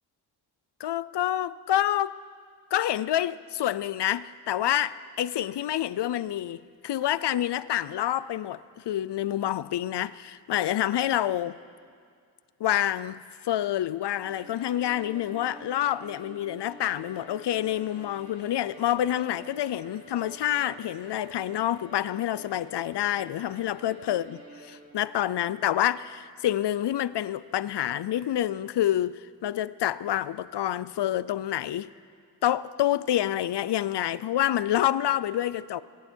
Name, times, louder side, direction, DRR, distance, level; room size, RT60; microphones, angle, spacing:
voice 1, 0.8-2.2 2.7-11.6 12.6-31.9 32.4-35.8, left 12 dB, 85° left, 0.6 m, -28 dB
Bowed string instrument, 14.1-25.2, right 2 dB, 30° right, 3.6 m, -49 dB
24.5 x 24.0 x 4.5 m
wide cardioid pair, 145°, 40 cm